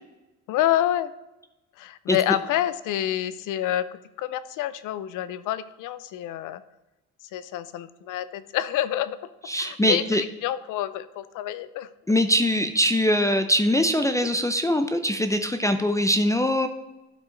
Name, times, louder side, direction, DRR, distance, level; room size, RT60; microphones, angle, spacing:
voice 1, 0.5-1.1 1.8-6.6 7.3-9.2 9.6-11.9 14.2-14.3, left 12 dB, 85° left, 15 dB, 0.5 m, -28 dB
voice 2, 9.5-10.2 12.1-16.7, equal, 10° left, 8 dB, 0.5 m, -22 dB
11.5 x 4.7 x 3.9 m, 1.0 s
cardioid pair, 90°, 30 cm